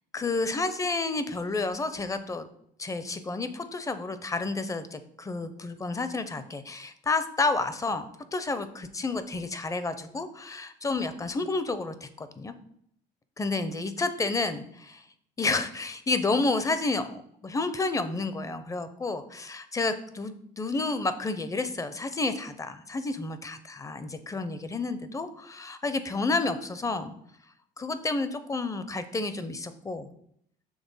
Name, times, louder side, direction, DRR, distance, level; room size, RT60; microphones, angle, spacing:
voice 1, 0.1-2.5 2.8-8.1 8.3-12.5 13.4-15.0 15.4-27.1 27.8-30.1, left 3 dB, 20° left, 11 dB, 0.5 m, -30 dB
6.3 x 3.3 x 5.4 m, 0.69 s
cardioid pair, 110°, 17 cm